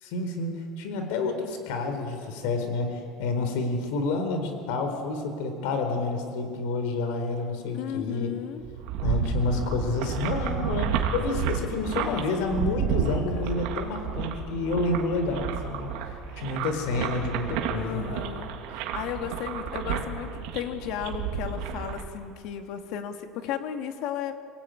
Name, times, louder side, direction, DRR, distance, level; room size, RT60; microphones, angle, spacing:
voice 1, 0.0-8.3 9.0-15.9 16.4-18.0, left 3 dB, 75° left, 6 dB, 4.3 m, -29 dB
voice 2, 7.7-8.6 12.0-12.8 13.4-13.6 16.3-16.4 17.7-24.3, left 9 dB, 55° left, 6 dB, 2.2 m, -35 dB
sound 1, 8.6-22.0, right 7 dB, 65° right, 2.8 m, -31 dB
27.5 x 18.5 x 9.3 m, 2.3 s
cardioid pair, 165°, 0 cm